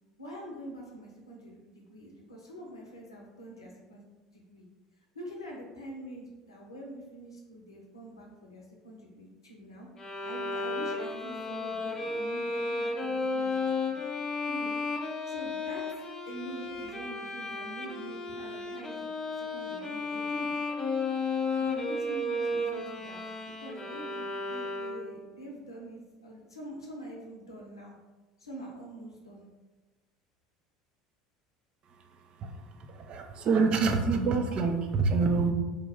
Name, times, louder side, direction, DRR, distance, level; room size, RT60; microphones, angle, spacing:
voice 1, 0.2-4.0 4.3-4.7 5.1-9.9 10.2-14.0 14.5-14.8 15.3-15.8 16.3-19.1 19.4-20.5 21.6-28.0 28.4-29.5, right 1 dB, 90° left, -1 dB, 0.7 m, -45 dB
Bowed string instrument, 10.0-25.3, left 3 dB, 25° left, 0.5 m, -33 dB
voice 2, 32.4-35.5, right 4 dB, 45° right, 5 dB, 0.4 m, -27 dB
3.1 x 2.2 x 3.3 m, 1.2 s
hypercardioid pair, 75°, 2 cm